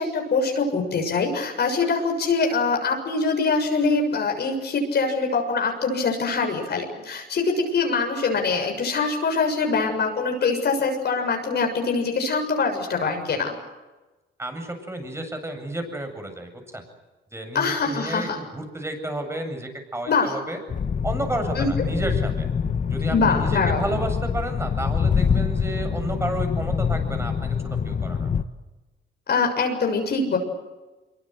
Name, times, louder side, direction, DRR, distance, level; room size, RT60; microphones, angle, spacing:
voice 1, 0.0-13.5 17.5-18.4 20.0-20.3 21.5-21.7 23.1-23.8 29.3-30.4, left 4 dB, 55° left, 3 dB, 6.9 m, -23 dB
voice 2, 14.4-16.8 17.3-20.6 21.0-22.5 22.9-27.6 27.8-28.3, right 1 dB, 15° right, 6 dB, 7.9 m, -31 dB
sound 1, 20.7-28.4, left 6 dB, 40° left, 1.4 m, -25 dB
25.5 x 24.0 x 8.0 m, 1.2 s
cardioid pair, 90°, 20 cm